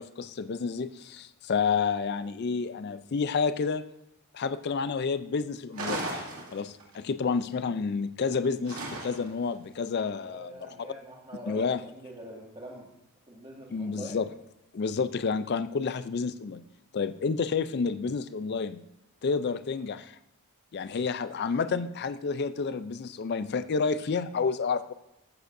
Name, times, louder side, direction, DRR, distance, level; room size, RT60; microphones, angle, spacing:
voice 1, 0.0-3.8 4.3-6.1 6.5-10.7 11.5-11.8 13.7-14.3 14.7-16.6 16.9-18.8 19.2-20.2 20.7-24.9, left 5 dB, 45° left, 13 dB, 0.4 m, -30 dB
sound 1, 5.7-7.0 8.7-9.4, right 2 dB, 80° right, 2.3 m, -36 dB
voice 2, 10.2-12.9 13.3-14.2, right 1 dB, 25° right, -2 dB, 2.0 m, -44 dB
14.5 x 7.9 x 2.6 m, 0.87 s
head